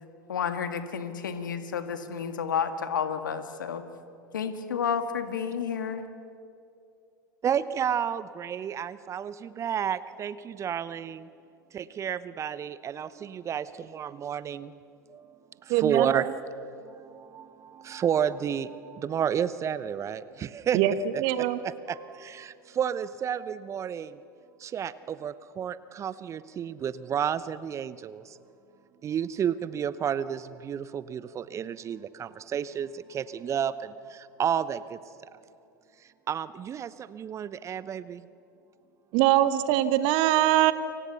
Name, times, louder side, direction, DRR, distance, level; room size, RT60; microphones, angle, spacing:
voice 1, 0.3-3.8 4.3-6.1, left 7 dB, 70° left, 9 dB, 2.0 m, -31 dB
voice 2, 7.4-11.3 11.7-14.7 15.1-16.4 16.7-21.2 21.6-24.2 24.6-28.4 29.0-35.3 36.3-38.2, right 8 dB, 30° right, 16 dB, 0.9 m, -31 dB
voice 3, 15.7-16.2 20.7-20.9 21.2-21.6 39.1-40.7, right 14 dB, 50° right, 13 dB, 1.2 m, -22 dB
29.5 x 25.0 x 7.0 m, 2.6 s
figure-of-eight pair, 85°, 11 cm